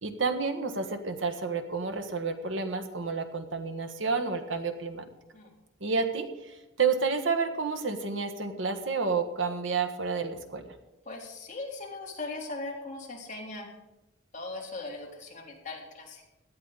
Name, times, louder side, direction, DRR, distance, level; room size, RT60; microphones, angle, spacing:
voice 1, 0.0-5.0 5.8-10.6, right 4 dB, 70° right, 7 dB, 1.5 m, -30 dB
voice 2, 11.1-13.7 14.3-16.2, left 2 dB, 40° left, -2 dB, 3.6 m, -39 dB
17.0 x 12.0 x 4.1 m, 1.0 s
head